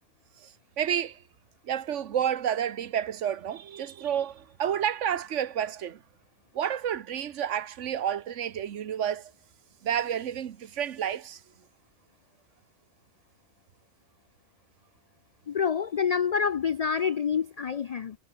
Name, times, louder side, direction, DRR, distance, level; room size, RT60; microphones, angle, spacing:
voice 1, 0.4-1.2 1.6-6.0 6.5-9.3 9.8-11.4, right 9 dB, 80° right, 1.2 m, -30 dB
voice 2, 15.5-18.2, left 7 dB, 70° left, 0.3 m, -27 dB
omnidirectional pair, 1.2 m